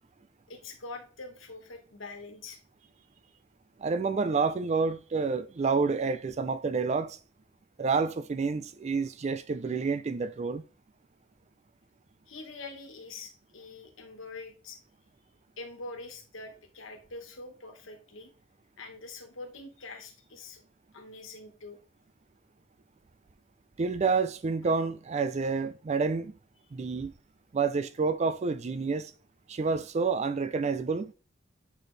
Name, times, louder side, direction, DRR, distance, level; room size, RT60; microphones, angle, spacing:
voice 1, 0.5-2.6 12.3-14.8 15.6-18.3 18.8-20.6 20.9-21.8, left 3 dB, 90° left, 1.5 m, -44 dB
voice 2, 3.8-7.2 7.8-10.6 23.8-26.3 26.7-27.1 27.5-29.1 29.5-31.1, right 4 dB, 35° right, 0.4 m, -29 dB
8.0 x 4.3 x 3.3 m
head